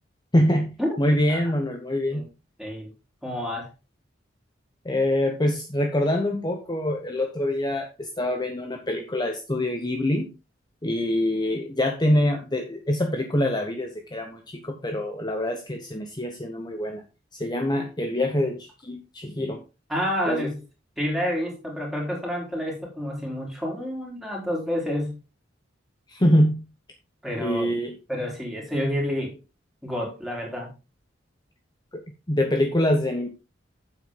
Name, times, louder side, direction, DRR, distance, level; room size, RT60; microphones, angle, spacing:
voice 1, 0.3-2.3 4.8-10.3 10.8-17.0 17.3-19.6 20.3-20.5 26.1-26.6 27.4-27.9 31.9-32.0 32.3-33.3, left 1 dB, 20° left, 1.0 m, -25 dB
voice 2, 2.6-2.9 3.2-3.7 19.9-20.6 21.0-25.2 27.2-27.7 28.1-29.4 29.8-30.7, equal, ahead, 4.0 m, -29 dB
9.6 x 7.8 x 3.7 m
head